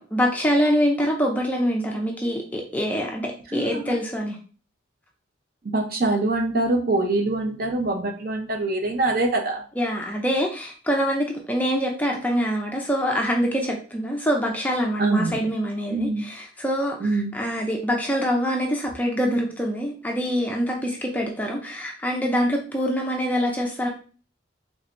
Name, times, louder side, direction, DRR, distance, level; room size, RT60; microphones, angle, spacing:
voice 1, 0.1-4.4 9.8-23.9, equal, 10° left, 0 dB, 0.4 m, -25 dB
voice 2, 3.5-4.0 5.6-9.6 15.0-15.4 15.9-16.3 17.0-17.3, right 2 dB, 45° right, 3 dB, 0.7 m, -24 dB
3.5 x 3.2 x 2.5 m, 0.38 s
head